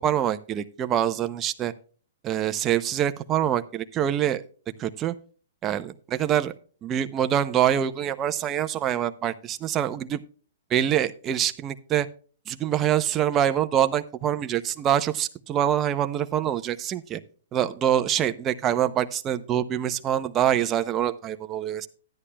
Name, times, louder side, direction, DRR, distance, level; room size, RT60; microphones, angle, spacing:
voice 1, 0.0-1.7 2.2-4.4 4.8-5.1 5.6-6.5 6.8-10.2 10.7-12.1 12.5-17.2 17.5-21.9, right 10 dB, 20° right, 10 dB, 0.6 m, -25 dB
13.0 x 9.9 x 2.2 m, 0.41 s
hypercardioid pair, 145°, 0 cm